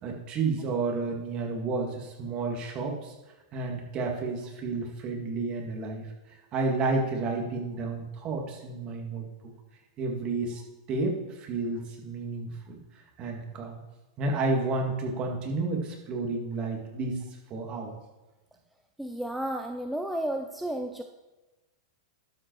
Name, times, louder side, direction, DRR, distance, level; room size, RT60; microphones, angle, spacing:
voice 1, 0.0-3.1 3.5-6.1 6.5-9.3 10.0-10.6 10.9-12.8 13.2-13.8 14.2-18.0, right 3 dB, 35° right, 1 dB, 2.0 m, -31 dB
voice 2, 19.0-21.0, right 1 dB, ahead, 3 dB, 0.5 m, -32 dB
12.0 x 5.2 x 4.7 m, 1.1 s
hypercardioid pair, 130°, 3 cm